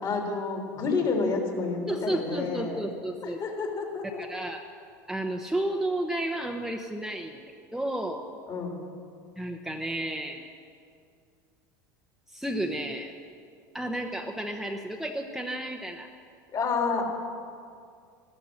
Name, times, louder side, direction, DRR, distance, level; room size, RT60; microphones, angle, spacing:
voice 1, 0.0-2.8 3.2-4.2 8.5-8.8 16.5-17.1, left 4 dB, 40° left, 1 dB, 3.7 m, -29 dB
voice 2, 1.9-3.4 4.0-4.6 5.1-8.3 9.4-10.5 12.3-13.1 13.7-16.1, right 1 dB, 5° right, 2 dB, 1.0 m, -32 dB
14.0 x 14.0 x 6.4 m, 2.3 s
hypercardioid pair, 90°, 10 cm